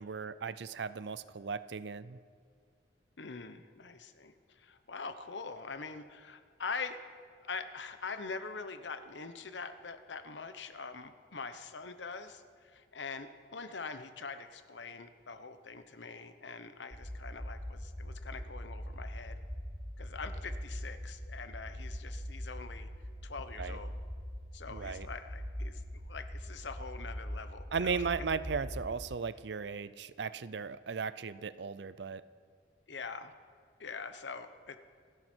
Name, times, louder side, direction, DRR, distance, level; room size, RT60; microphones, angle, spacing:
voice 1, 0.0-2.2 23.6-23.8 24.7-25.1 27.7-32.2, right 5 dB, 75° right, 15 dB, 0.5 m, -36 dB
voice 2, 3.2-7.0 7.4-19.4 20.0-22.9 23.2-24.0 24.5-28.0 32.9-33.3 33.8-34.8, left 4 dB, 85° left, 10 dB, 1.0 m, -44 dB
sound 1, 16.9-28.9, equal, 10° right, 1.9 m, -42 dB
28.0 x 10.5 x 4.5 m, 2.1 s
head